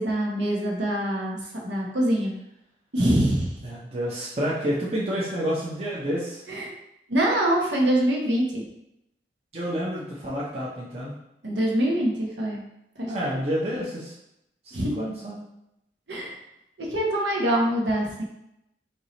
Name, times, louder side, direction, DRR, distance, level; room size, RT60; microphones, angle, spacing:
voice 1, 0.0-1.4 1.6-2.4 2.9-3.5 6.5-6.7 7.1-8.6 11.4-12.6 13.0-13.1 14.7-14.9 16.1-16.3 16.8-18.2, right 1 dB, 85° right, -2 dB, 1.2 m, -24 dB
voice 2, 3.6-6.5 9.5-11.2 13.1-14.1 14.6-15.4, equal, 35° right, -6 dB, 0.7 m, -29 dB
4.7 x 2.8 x 4.0 m, 0.83 s
head